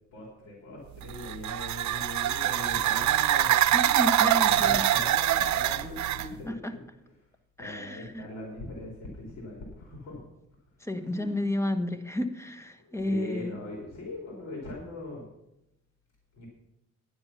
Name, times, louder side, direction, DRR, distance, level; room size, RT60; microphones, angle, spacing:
voice 1, 0.1-3.6 4.2-6.8 7.6-10.3 11.1-11.3 12.8-15.2 16.3-16.5, left 2 dB, 60° left, -1 dB, 3.7 m, -41 dB
sound 1, 1.0-6.3, right 12 dB, 70° right, 0.8 m, -24 dB
voice 2, 3.7-4.8 6.5-6.7 7.6-8.3 10.8-13.6, left 1 dB, 10° left, 9 dB, 1.3 m, -31 dB
11.5 x 9.8 x 5.8 m, 0.87 s
cardioid pair, 90°, 30 cm